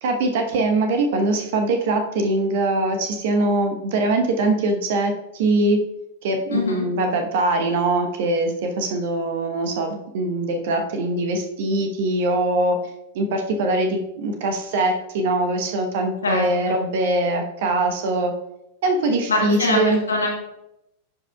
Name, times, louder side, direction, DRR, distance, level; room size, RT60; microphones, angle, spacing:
voice 1, 0.0-5.8 6.2-12.8 13.1-18.3 18.8-20.0, right 2 dB, 55° right, 5 dB, 1.0 m, -22 dB
voice 2, 6.5-6.9 16.2-16.8 19.3-20.3, left 2 dB, 70° left, 1 dB, 1.4 m, -23 dB
10.5 x 5.1 x 2.3 m, 0.84 s
figure-of-eight pair, 90°, 0 cm